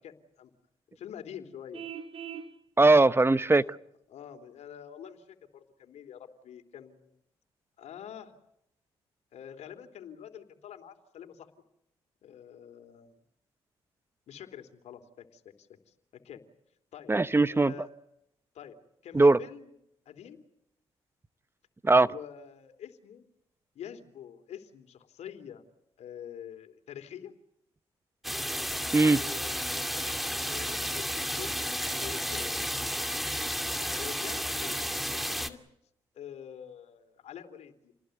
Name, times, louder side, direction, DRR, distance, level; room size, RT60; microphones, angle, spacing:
voice 1, 0.0-0.5 0.9-1.8 3.5-3.8 4.1-7.2 7.8-8.3 9.3-11.5 12.2-13.2 14.3-16.4 16.9-17.1 17.5-17.9 18.5-19.7 20.0-20.4 22.1-23.2 23.7-25.6 26.0-27.3 29.1-32.9 33.8-35.6 36.1-37.9, left 9 dB, 75° left, 6 dB, 3.5 m, -46 dB
Vehicle horn car horn honking, 1.7-2.5, right 8 dB, 55° right, 2.7 m, -40 dB
voice 2, 2.8-3.6 17.1-17.7 19.1-19.4 21.8-22.1 28.9-29.2, right 2 dB, 20° right, 16 dB, 1.0 m, -20 dB
sound 1, 28.2-35.5, equal, ahead, 2.4 m, -32 dB
29.5 x 20.0 x 8.1 m, 0.79 s
supercardioid pair, 60°, 12 cm